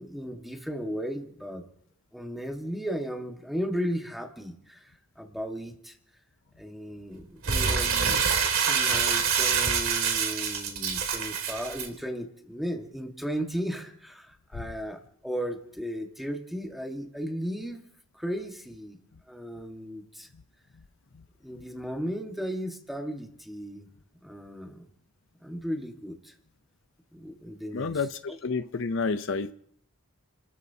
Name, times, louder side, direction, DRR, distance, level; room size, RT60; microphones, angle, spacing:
voice 1, 0.0-1.6 2.1-5.9 6.6-8.2 8.7-17.8 18.1-19.0 19.3-20.3 21.4-23.9 24.2-24.9 25.4-26.3 27.1-28.4, equal, ahead, 1.5 m, -35 dB
Crumpling crinkling, 7.4-11.9, right 6 dB, 70° right, 2.4 m, -26 dB
voice 2, 27.7-29.5, left 4 dB, 60° left, 0.6 m, -29 dB
30.0 x 13.5 x 2.8 m
head